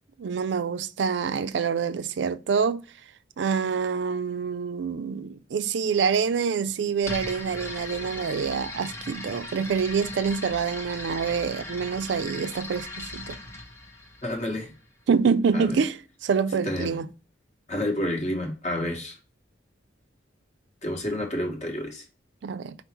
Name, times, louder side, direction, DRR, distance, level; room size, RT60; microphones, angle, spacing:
voice 1, 0.2-2.8 3.4-13.4 15.1-17.1 22.4-22.8, right 6 dB, 65° right, 0.3 m, -26 dB
sound 1, 7.0-14.8, left 2 dB, 15° left, 0.9 m, -38 dB
voice 2, 14.2-14.7 15.5-15.8 16.6-16.9 17.7-19.2 20.8-22.0, left 1 dB, 40° left, 1.2 m, -29 dB
5.3 x 2.1 x 4.3 m
head